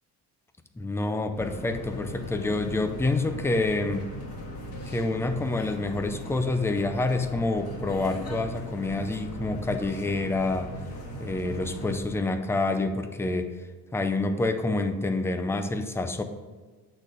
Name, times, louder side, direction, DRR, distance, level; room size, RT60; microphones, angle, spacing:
voice 1, 0.8-4.1 4.9-10.7 11.2-13.5 13.9-16.2, left 2 dB, 5° left, 7 dB, 0.4 m, -27 dB
sound 1, 1.3-12.0, equal, 40° left, 1.9 m, -38 dB
8.7 x 4.1 x 4.9 m, 1.4 s
cardioid pair, 160°, 37 cm